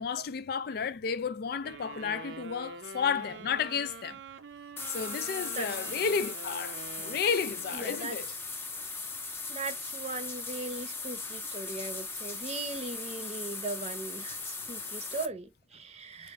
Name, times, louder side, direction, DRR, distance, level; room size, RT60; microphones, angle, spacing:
voice 1, 0.0-4.2 4.9-8.4, left 6 dB, 60° left, 0.4 m, -32 dB
sound 1, 1.6-8.2, right 4 dB, 90° right, 0.6 m, -45 dB
sound 2, 4.8-15.3, left 3 dB, 15° left, 0.6 m, -38 dB
voice 2, 5.5-6.0 7.7-8.2 9.5-16.3, right 3 dB, 35° right, 0.7 m, -39 dB
4.3 x 2.5 x 3.1 m
head